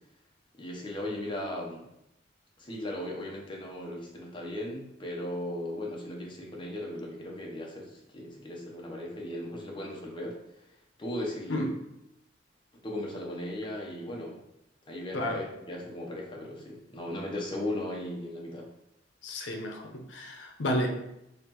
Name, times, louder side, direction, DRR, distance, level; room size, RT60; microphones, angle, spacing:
voice 1, 0.6-1.9 2.6-10.4 11.0-11.7 12.8-14.4 14.9-18.7, left 1 dB, 25° left, -1 dB, 0.7 m, -37 dB
voice 2, 19.2-20.9, left 1 dB, 75° left, 2 dB, 0.7 m, -31 dB
4.0 x 3.0 x 2.9 m, 0.84 s
head